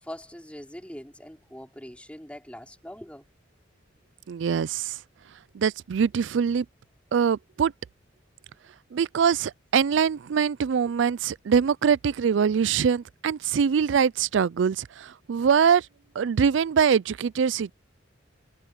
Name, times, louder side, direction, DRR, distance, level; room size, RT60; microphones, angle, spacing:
voice 1, 0.0-3.2, equal, 5° left, 4.9 m, -42 dB
voice 2, 4.3-4.9 5.5-6.6 7.1-7.7 8.9-15.8 16.2-17.7, right 7 dB, 75° right, 0.4 m, -23 dB
head